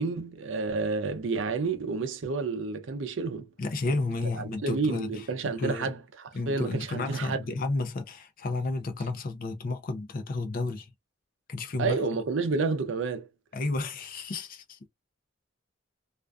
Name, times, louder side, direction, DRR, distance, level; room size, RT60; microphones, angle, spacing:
voice 1, 0.0-3.5 4.4-7.4 11.8-13.3, right 4 dB, 70° right, 0.5 m, -30 dB
voice 2, 3.6-5.3 5.6-5.9 6.3-10.9 11.5-12.0 13.5-14.8, left 3 dB, 45° left, 0.4 m, -32 dB
2.4 x 2.3 x 2.3 m
head